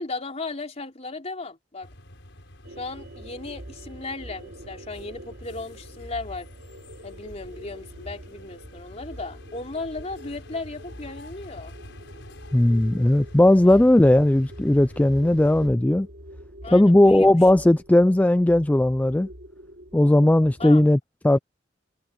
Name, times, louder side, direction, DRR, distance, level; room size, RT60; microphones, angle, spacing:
voice 1, 0.0-1.9 2.8-6.5 7.0-11.7 13.6-13.8 16.6-17.3 20.6-20.8, left 3 dB, 35° left, 3.6 m, -36 dB
sound 1, 1.8-15.7, left 1 dB, 75° left, 5.8 m, -47 dB
sound 2, 2.6-20.9, equal, 65° right, 2.8 m, -44 dB
voice 2, 12.5-16.1 16.7-19.3 19.9-21.4, left 1 dB, 10° left, 0.3 m, -17 dB
head